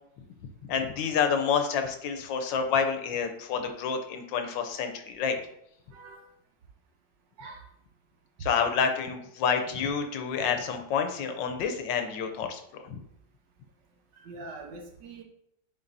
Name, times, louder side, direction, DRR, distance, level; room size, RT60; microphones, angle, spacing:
voice 1, 0.7-5.4 8.4-12.6, left 6 dB, 75° left, 6 dB, 1.3 m, -28 dB
voice 2, 5.9-6.3 7.4-7.6 9.7-9.8 14.1-15.2, right 3 dB, 70° right, 3 dB, 1.5 m, -44 dB
9.9 x 3.9 x 2.6 m, 0.74 s
omnidirectional pair, 2.1 m